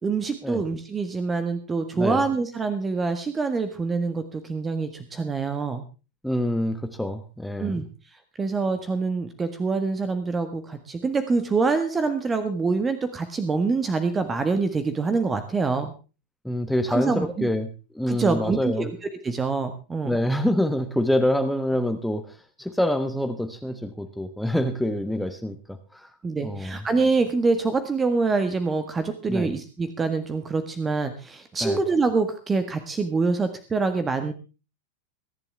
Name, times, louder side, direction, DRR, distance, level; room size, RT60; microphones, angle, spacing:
voice 1, 0.0-5.8 7.6-7.9 8.4-15.9 16.9-17.5 18.1-18.9 19.2-20.2 26.2-34.3, right 4 dB, 15° right, 10 dB, 1.6 m, -25 dB
voice 2, 6.2-7.8 16.4-17.7 17.9-18.9 20.1-25.6 25.9-26.1 26.4-26.8 29.3-29.5 31.6-31.8, left 1 dB, ahead, 7 dB, 1.3 m, -26 dB
22.5 x 11.0 x 3.5 m, 0.33 s
figure-of-eight pair, 90°, 0 cm